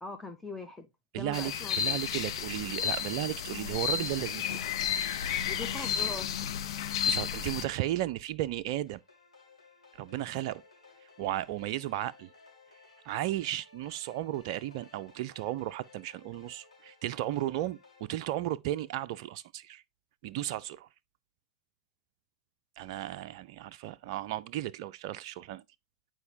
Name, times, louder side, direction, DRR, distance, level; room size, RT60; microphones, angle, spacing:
voice 1, 0.0-0.9 1.1-2.0 5.5-6.4 7.1-7.2, left 3 dB, 5° left, 0.7 m, -42 dB
voice 2, 1.1-4.6 5.8-5.9 7.0-9.0 10.0-10.6 11.2-12.3 13.0-19.8 20.2-20.9 22.8-25.6, right 14 dB, 45° right, 0.3 m, -34 dB
sound 1, 1.3-7.7, left 8 dB, 55° left, 0.7 m, -32 dB
sound 2, 8.9-18.0, left 4 dB, 80° left, 2.6 m, -58 dB
9.5 x 4.5 x 2.8 m
figure-of-eight pair, 95°, 3 cm